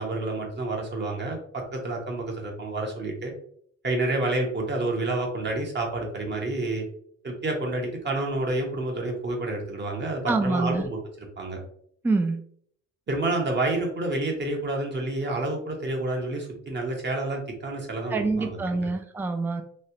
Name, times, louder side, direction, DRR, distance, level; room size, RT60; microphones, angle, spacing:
voice 1, 0.0-3.3 3.8-6.8 7.2-11.0 11.4-11.6 13.1-18.9, right 2 dB, 35° right, 1 dB, 1.0 m, -29 dB
voice 2, 10.3-10.9 12.0-12.4 18.1-19.6, right 3 dB, 5° right, 6 dB, 0.3 m, -26 dB
3.1 x 2.4 x 2.8 m, 0.62 s
cardioid pair, 90°, 30 cm